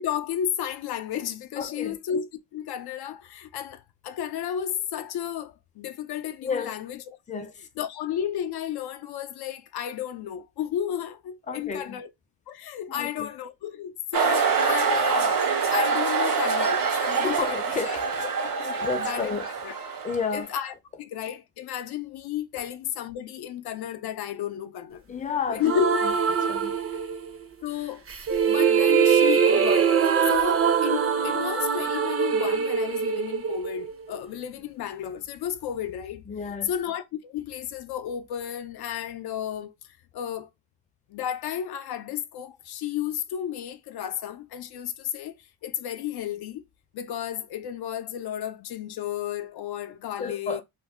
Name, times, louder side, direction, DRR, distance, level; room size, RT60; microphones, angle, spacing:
voice 1, 0.0-7.0 7.3-7.5 7.8-12.1 12.5-17.6 17.9-18.3 18.6-19.3 19.6-19.7 20.3-25.0 25.5-26.0 26.4-26.5 27.6-28.0 28.4-36.2 36.6-40.5 41.1-46.6 46.9-50.6, left 10 dB, 80° left, 0.5 m, -33 dB
voice 2, 1.6-2.0 6.4-6.7 7.3-7.7 11.5-12.0 12.9-13.3 17.2-18.1 18.8-19.5 20.0-20.5 22.5-22.7 25.1-25.6 26.0-26.1 26.5-27.0 36.3-36.7 50.2-50.6, left 5 dB, 20° left, 0.5 m, -31 dB
sound 1, 14.1-20.5, right 5 dB, 60° right, 1.0 m, -25 dB
sound 2, 25.6-27.4 28.1-34.2, right 7 dB, 35° right, 0.6 m, -23 dB
2.6 x 2.1 x 3.4 m
cardioid pair, 105°, 38 cm